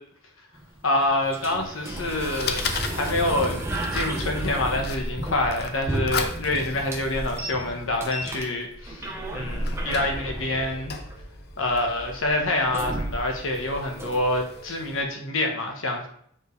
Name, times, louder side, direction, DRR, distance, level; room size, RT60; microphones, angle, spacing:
sound 1, 0.5-14.5, right 1 dB, 15° right, 0.9 m, -33 dB
voice 1, 0.8-3.6 3.9-9.1 9.3-11.0 11.6-16.1, left 1 dB, 65° left, 2 dB, 1.3 m, -26 dB
Fire, 1.6-15.0, left 6 dB, 50° left, 0.6 m, -38 dB
7.6 x 5.0 x 3.3 m, 0.66 s
head